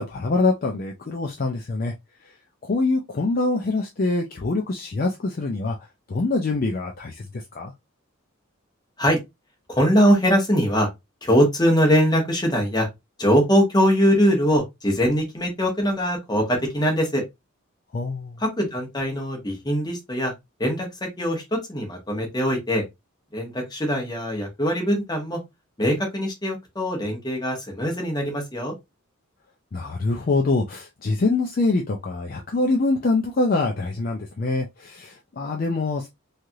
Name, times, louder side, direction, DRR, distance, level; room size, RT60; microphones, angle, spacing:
voice 1, 0.0-1.9 2.7-5.8 6.1-7.7 17.9-18.4 29.7-36.1, left 3 dB, 40° left, 0.4 m, -24 dB
voice 2, 9.7-10.9 11.2-12.9 13.2-17.2 18.4-20.3 20.6-20.9 21.2-22.8 23.3-25.4 25.8-28.7, equal, 20° left, 0.9 m, -22 dB
3.2 x 2.4 x 2.7 m
head